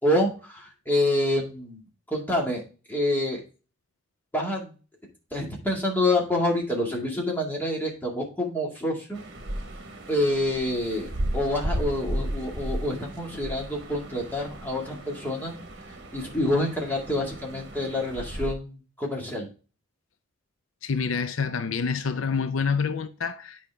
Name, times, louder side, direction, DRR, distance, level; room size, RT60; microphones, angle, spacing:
voice 1, 0.0-1.8 2.1-2.6 2.9-3.4 4.3-4.7 5.3-9.2 10.1-15.6 16.1-19.5, left 1 dB, 10° left, 1.9 m, -27 dB
sound 1, 9.1-18.5, right 1 dB, 55° right, 1.5 m, -35 dB
voice 2, 20.8-23.6, left 5 dB, 75° left, 0.5 m, -27 dB
8.5 x 5.1 x 3.4 m
head